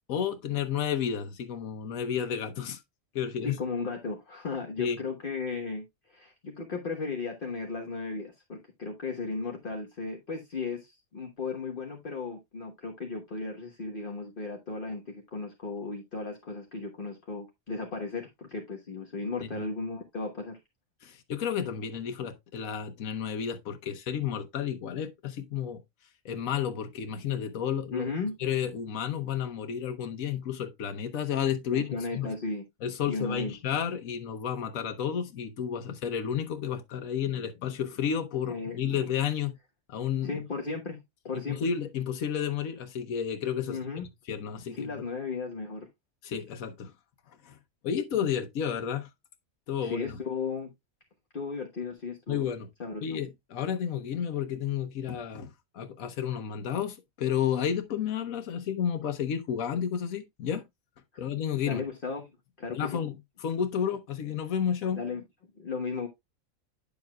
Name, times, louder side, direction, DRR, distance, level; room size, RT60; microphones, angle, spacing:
voice 1, 0.1-2.8 3.1-3.6 4.8-5.0 19.4-19.6 21.0-25.8 26.2-28.1 28.4-32.4 32.8-39.6 39.9-40.3 41.3-43.8 44.3-44.9 46.2-46.9 47.3-47.6 47.8-49.1 49.7-50.2 52.3-52.7 53.0-60.6 61.2-61.8 62.7-63.1 63.4-65.0, left 8 dB, 85° left, 1.3 m, -31 dB
voice 2, 3.4-20.6 27.9-28.3 31.7-32.6 33.1-33.5 38.5-38.8 40.2-41.6 43.7-44.1 44.7-45.9 49.8-50.7 51.3-52.5 52.8-53.0 61.7-62.3 62.6-63.0 64.9-65.2 65.6-66.1, left 4 dB, 40° left, 1.3 m, -35 dB
9.5 x 7.1 x 2.3 m
omnidirectional pair, 1.4 m